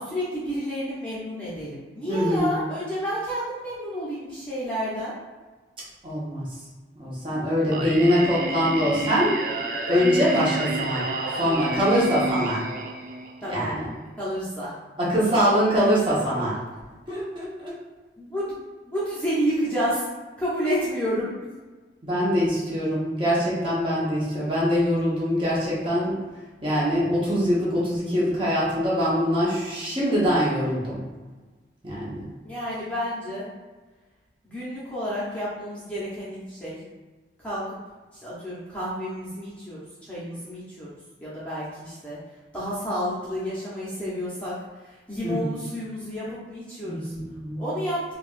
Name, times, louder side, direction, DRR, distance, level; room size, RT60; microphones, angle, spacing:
voice 1, 0.0-5.1 10.1-10.4 13.4-13.7 14.2-14.7 18.2-18.5 18.8-20.1 20.4-21.3 32.4-33.5 34.4-36.8 37.4-37.8 38.2-39.8 40.1-40.9 41.2-42.2 42.5-44.5 44.8-47.1 47.5-48.0, equal, 10° left, -10 dB, 0.8 m, -30 dB
voice 2, 2.1-2.4 6.0-6.4 7.0-9.4 9.9-11.0 11.3-12.6 13.5-13.8 15.0-16.6 17.1-17.7 22.0-26.2 26.6-31.0 31.8-32.3 45.2-45.5 46.8-47.6, equal, 25° right, -8 dB, 1.1 m, -23 dB
Singing, 7.7-13.7, right 2 dB, 50° right, 0.4 m, -30 dB
4.6 x 2.4 x 2.5 m, 1.3 s
head